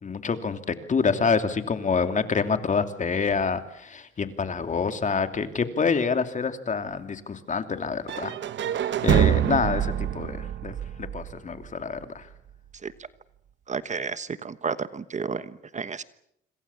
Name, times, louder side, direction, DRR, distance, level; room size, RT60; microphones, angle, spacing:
voice 1, 0.0-8.4 8.7-12.3, left 5 dB, 40° left, 8 dB, 2.9 m, -27 dB
sound 1, 8.1-12.0, right 10 dB, 70° right, 1.2 m, -26 dB
voice 2, 13.7-15.4 15.7-16.0, right 5 dB, 35° right, 13 dB, 1.2 m, -31 dB
26.5 x 26.0 x 7.3 m, 0.73 s
cardioid pair, 90°, 20 cm